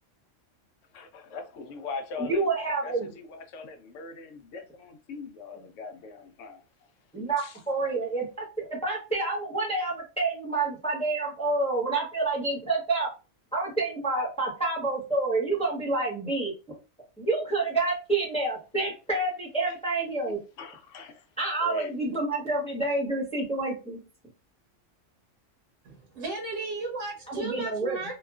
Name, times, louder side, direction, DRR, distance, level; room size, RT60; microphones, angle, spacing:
voice 1, 0.9-2.5 2.8-6.6 7.4-7.6 19.6-19.8 20.6-21.2 21.6-22.0, left 4 dB, 75° left, 0.9 m, -41 dB
voice 2, 2.2-3.1 7.1-13.1 13.5-16.5 17.2-20.4 21.4-24.0 27.3-28.0, right 3 dB, 5° left, 0.8 m, -28 dB
voice 3, 25.8-28.1, right 3 dB, 85° right, 1.2 m, -34 dB
2.9 x 2.3 x 2.3 m
omnidirectional pair, 1.3 m